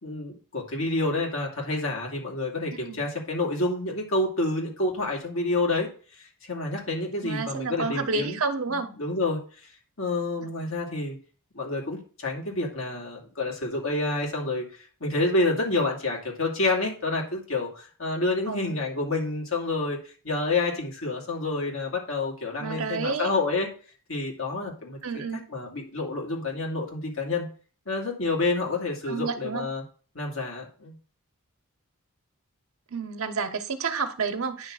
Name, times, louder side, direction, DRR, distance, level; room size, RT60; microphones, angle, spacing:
voice 1, 0.0-8.4 8.7-9.7 10.0-11.2 11.5-14.7 15.0-20.0 20.2-23.7 24.1-25.0 25.5-27.5 27.9-29.8 30.1-30.9, left 2 dB, 65° left, 2.6 m, -28 dB
voice 2, 7.2-8.9 18.5-18.8 22.6-23.3 25.0-25.4 29.1-29.7 32.9-34.7, right 4 dB, 70° right, 1.0 m, -30 dB
9.9 x 3.4 x 6.2 m
head